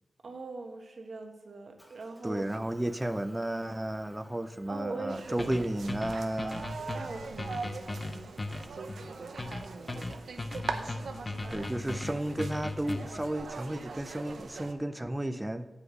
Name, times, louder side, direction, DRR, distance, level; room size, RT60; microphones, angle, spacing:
voice 1, 0.2-2.4 4.7-5.5 6.8-8.2 8.7-10.2, right 3 dB, 65° right, 4 dB, 1.2 m, -42 dB
Motor vehicle (road) / Engine, 1.8-10.2, equal, 10° left, 1.7 m, -59 dB
voice 2, 2.2-6.8 11.5-15.7, right 1 dB, 15° right, 10 dB, 0.5 m, -33 dB
sound 1, 5.1-14.7, right 4 dB, 85° right, 0.7 m, -42 dB
sound 2, 5.4-13.3, left 2 dB, 30° left, 0.5 m, -38 dB
8.3 x 5.0 x 6.2 m, 1.3 s
wide cardioid pair, 80°, 0 cm